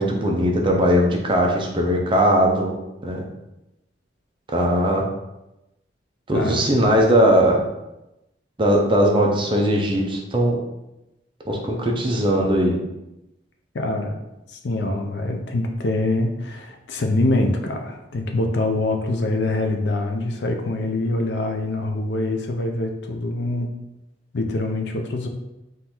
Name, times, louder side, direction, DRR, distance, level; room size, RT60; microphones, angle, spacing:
voice 1, 0.0-2.7 3.0-3.2 4.5-5.0 6.3-7.6 8.6-10.6 11.5-12.8, equal, 30° right, 0 dB, 0.6 m, -19 dB
voice 2, 13.7-14.1 14.5-23.7 24.3-25.3, left 2 dB, 65° left, 5 dB, 0.5 m, -24 dB
3.7 x 2.6 x 4.3 m, 0.94 s
head